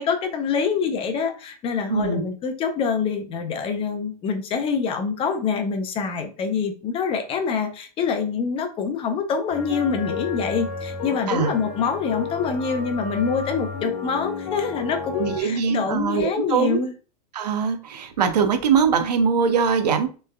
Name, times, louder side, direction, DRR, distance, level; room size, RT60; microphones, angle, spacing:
voice 1, 0.0-16.9, left 5 dB, 30° left, 6 dB, 0.6 m, -25 dB
voice 2, 1.9-2.2 11.3-11.5 15.2-16.8 17.3-20.1, right 6 dB, 90° right, 8 dB, 0.6 m, -22 dB
sound 1, 9.5-15.4, left 5 dB, 50° left, 1.2 m, -32 dB
3.2 x 3.2 x 2.3 m, 0.36 s
hypercardioid pair, 125°, 20 cm